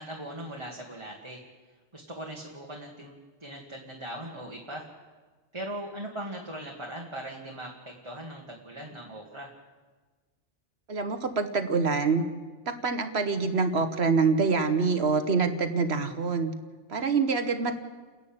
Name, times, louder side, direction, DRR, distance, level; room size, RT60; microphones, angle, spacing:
voice 1, 0.0-1.4 1.9-4.9 5.5-9.5, right 1 dB, 25° right, -1 dB, 2.0 m, -40 dB
voice 2, 10.9-12.2 12.7-16.5 16.9-17.8, right 4 dB, 70° right, 8 dB, 1.5 m, -25 dB
29.5 x 11.0 x 8.8 m, 1.4 s
omnidirectional pair, 1.2 m